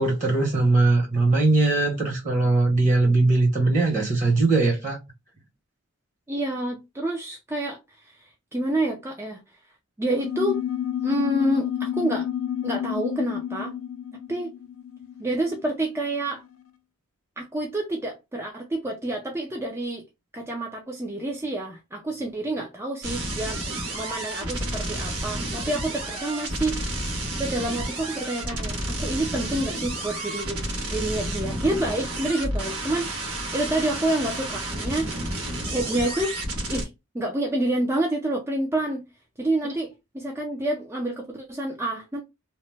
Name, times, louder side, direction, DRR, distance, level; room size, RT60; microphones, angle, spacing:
voice 1, 0.0-5.0, right 2 dB, 35° right, 1.0 m, -20 dB
voice 2, 6.3-8.2 8.5-9.4 10.0-10.6 11.0-12.3 12.6-13.7 14.3-14.5 15.2-16.4 17.4-20.0 20.3-26.8 27.4-30.6 30.9-36.3 36.7-36.9 37.1-39.0 39.4-42.2, right 1 dB, 10° right, 0.3 m, -28 dB
sound 1, 10.0-16.0, left 10 dB, 80° left, 0.4 m, -30 dB
sound 2, 23.0-36.8, right 1 dB, 90° right, 1.2 m, -31 dB
2.9 x 2.0 x 3.1 m
head